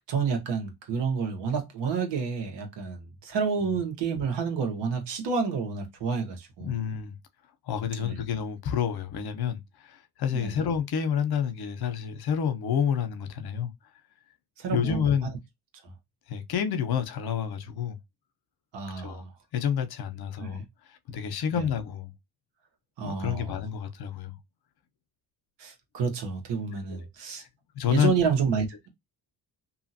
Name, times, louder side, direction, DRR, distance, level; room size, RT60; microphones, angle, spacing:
voice 1, 0.1-6.7 8.0-8.2 10.3-10.5 14.6-15.1 18.7-19.3 20.4-20.6 21.5-21.7 23.0-23.6 25.6-27.4 27.9-28.9, right 5 dB, 80° right, 1.2 m, -29 dB
voice 2, 6.6-7.2 7.7-13.7 14.7-15.3 16.3-18.0 19.0-19.2 19.5-20.6 21.1-22.1 23.0-24.4 26.9-27.1 27.3-27.5 27.8-28.2, left 8 dB, 65° left, 0.8 m, -29 dB
2.8 x 2.5 x 2.6 m
cardioid pair, 90°, 41 cm